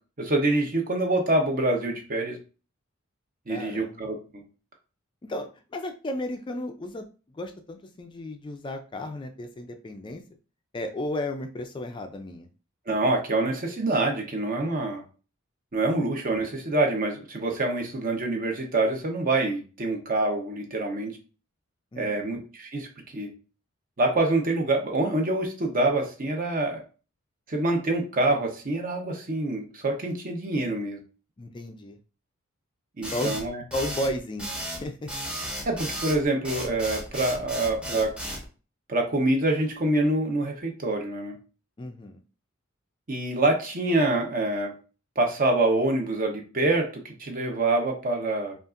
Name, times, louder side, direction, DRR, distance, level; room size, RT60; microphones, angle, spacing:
voice 1, 0.2-2.4 3.5-4.4 12.9-15.0 15.7-21.2 22.0-22.9 23.1-23.3 24.0-26.8 27.5-31.0 33.0-33.6 35.6-38.1 38.9-41.4 43.1-44.7 45.2-48.6, right 2 dB, 45° right, 2 dB, 0.8 m, -26 dB
voice 2, 3.5-4.0 5.2-7.0 7.3-10.2 10.7-12.5 21.9-22.4 31.4-32.0 33.1-33.4 33.7-35.1 41.8-42.2, left 1 dB, 25° left, 6 dB, 0.4 m, -34 dB
sound 1, 33.0-38.4, equal, 5° right, 0.7 m, -34 dB
5.2 x 2.5 x 2.5 m, 0.35 s
head